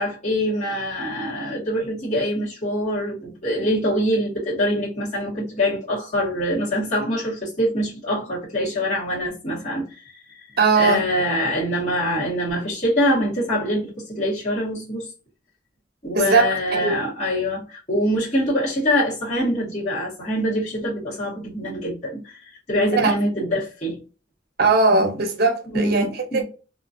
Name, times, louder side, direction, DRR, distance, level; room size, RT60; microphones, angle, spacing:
voice 1, 0.0-10.1 10.7-15.1 16.0-22.4 22.7-24.0 25.7-26.4, equal, 40° left, 1.6 m, -24 dB
voice 2, 10.6-11.0 16.1-17.0 22.9-23.1 24.6-26.4, right 3 dB, 60° right, 0.8 m, -19 dB
2.9 x 2.6 x 2.5 m
head